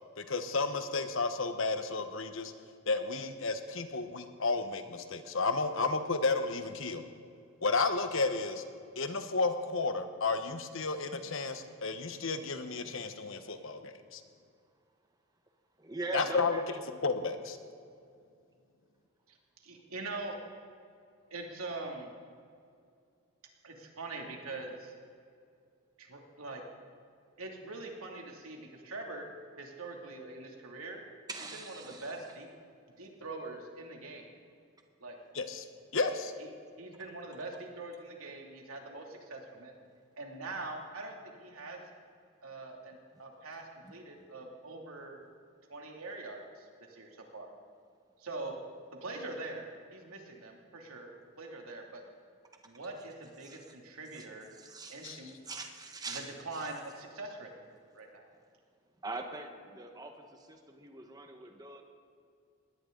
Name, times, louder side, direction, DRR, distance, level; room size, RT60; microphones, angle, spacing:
voice 1, 0.2-2.5 2.9-7.0 7.6-8.6 8.9-14.2 16.1-16.6 17.0-17.6 35.3-35.6 35.9-36.3 55.0-55.2, left 3 dB, 65° left, 8 dB, 1.2 m, -32 dB
voice 2, 15.8-16.8 31.3-32.1 43.8-44.0 53.4-53.6 54.1-54.2 54.5-55.2 55.5-56.7 59.0-61.8, right 2 dB, 20° right, 3 dB, 1.4 m, -42 dB
voice 3, 19.6-20.4 21.3-22.1 23.6-24.9 26.0-26.6 27.4-29.3 29.6-31.0 31.5-32.5 33.0-34.2 35.0-35.2 36.4-36.5 36.8-39.7 40.2-41.8 42.4-45.2 45.7-47.5 48.2-48.5 49.0-51.1 51.4-52.0 52.6-54.5 54.9-55.4 56.1-57.6 57.9-58.3, right 2 dB, 85° right, 1 dB, 2.8 m, -43 dB
21.0 x 17.5 x 4.0 m, 2.3 s
head